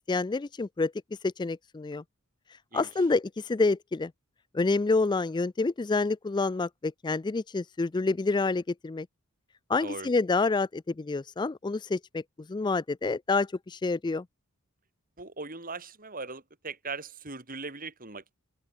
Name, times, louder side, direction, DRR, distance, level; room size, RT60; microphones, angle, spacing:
voice 1, 0.1-0.9 1.2-2.0 2.7-4.1 4.5-9.1 9.7-14.2, left 3 dB, 20° left, 0.3 m, -28 dB
voice 2, 15.2-18.4, right 4 dB, 40° right, 4.5 m, -39 dB
open air
head